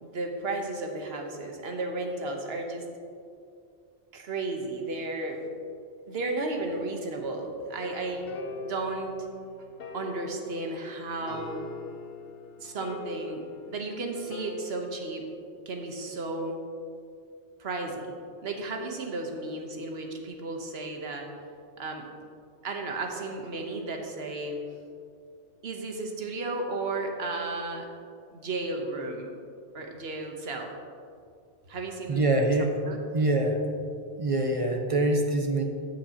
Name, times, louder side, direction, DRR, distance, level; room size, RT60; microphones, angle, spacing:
voice 1, 0.0-2.9 4.1-5.4 6.1-8.3 8.6-9.1 9.9-11.6 12.6-15.3 15.7-16.6 17.6-18.0 18.4-21.3 21.8-22.1 22.6-24.6 25.6-27.9 28.3-29.3 29.7-30.7 31.7-32.2 32.9-33.0, right 2 dB, 65° right, 2 dB, 1.3 m, -34 dB
sound 1, 7.8-14.7, left 2 dB, 60° left, 0.8 m, -41 dB
voice 2, 32.1-32.7 33.1-33.6 34.2-35.6, right 2 dB, 35° right, 3 dB, 0.7 m, -24 dB
13.0 x 7.4 x 2.9 m, 2.4 s
omnidirectional pair, 1.1 m